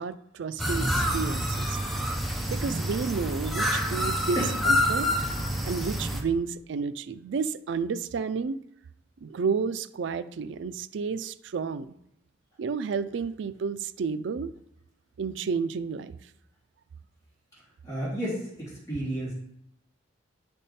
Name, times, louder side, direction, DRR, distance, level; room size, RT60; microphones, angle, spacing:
voice 1, 0.0-1.8 2.5-5.1 5.6-8.6 9.2-11.9 12.6-14.5 15.2-16.1, right 5 dB, 70° right, 13 dB, 0.3 m, -31 dB
sound 1, 0.6-6.2, equal, ahead, 0.6 m, -27 dB
voice 2, 17.8-19.3, right 1 dB, 15° left, -9 dB, 2.8 m, -31 dB
10.0 x 3.5 x 4.2 m, 0.78 s
head